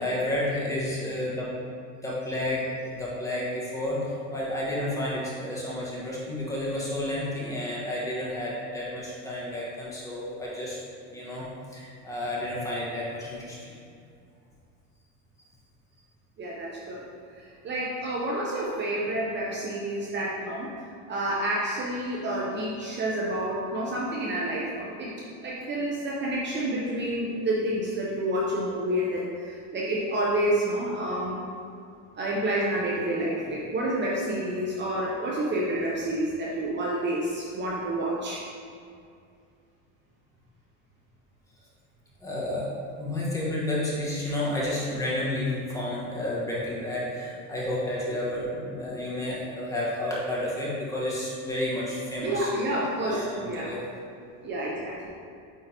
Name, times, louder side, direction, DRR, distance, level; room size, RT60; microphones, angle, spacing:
voice 1, 0.0-1.5 2.0-10.8 11.1-11.4 11.7-13.7 42.2-42.7 43.0-52.5 53.0-53.8, left 1 dB, 10° left, -7 dB, 1.5 m, -31 dB
voice 2, 16.4-17.1 17.6-20.7 21.1-25.1 25.4-31.5 32.2-38.4 52.2-53.7 54.4-55.1, right 1 dB, 30° right, -5 dB, 0.8 m, -29 dB
9.0 x 3.6 x 3.0 m, 2.4 s
supercardioid pair, 125°, 37 cm